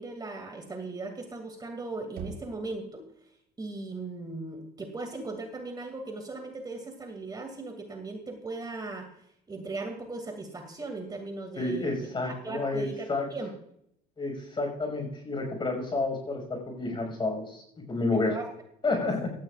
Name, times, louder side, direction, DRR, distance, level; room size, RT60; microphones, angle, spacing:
voice 1, 0.0-3.0 3.6-9.1 9.5-13.5 18.1-18.5 18.9-19.1, right 3 dB, 25° right, 4 dB, 2.4 m, -38 dB
Knock, 2.2-3.1, right 5 dB, 80° right, 4.4 m, -43 dB
voice 2, 11.6-13.2 14.2-17.6 17.9-18.3 18.8-19.3, left 3 dB, 30° left, 3 dB, 5.8 m, -30 dB
17.0 x 13.5 x 2.5 m, 0.72 s
cardioid pair, 110°, 17 cm